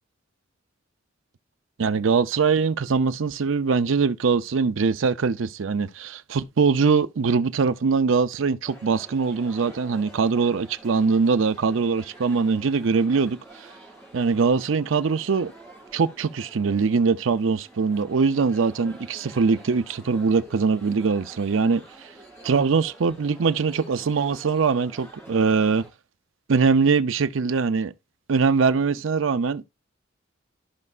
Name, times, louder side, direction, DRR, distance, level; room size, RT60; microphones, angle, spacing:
voice 1, 1.8-13.4 14.1-15.5 15.9-21.8 22.4-25.9 26.5-27.9 28.3-29.6, right 5 dB, 70° right, 0.5 m, -22 dB
sound 1, 8.6-25.9, right 2 dB, 15° left, 2.9 m, -47 dB
13.0 x 5.4 x 2.4 m
head